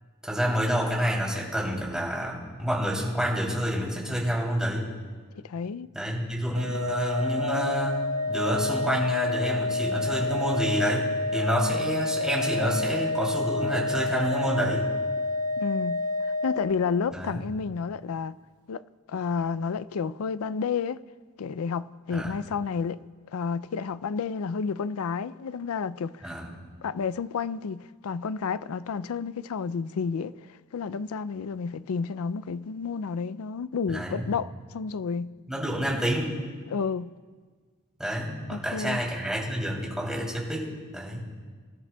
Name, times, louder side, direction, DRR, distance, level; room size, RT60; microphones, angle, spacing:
voice 1, 0.2-4.9 5.9-8.0 8.3-14.9 17.1-17.4 22.1-22.3 26.2-26.5 33.9-34.3 35.5-36.4 38.0-41.3, equal, 5° right, 2.9 m, -28 dB
voice 2, 5.4-5.9 15.6-18.4 18.7-18.8 19.1-21.0 21.4-23.0 23.3-26.3 26.8-30.3 30.7-35.3 36.7-37.2 38.5-39.0, left 5 dB, 90° left, 0.4 m, -31 dB
Organ, 6.5-17.2, left 2 dB, 80° right, 0.6 m, -29 dB
24.0 x 12.5 x 2.3 m
head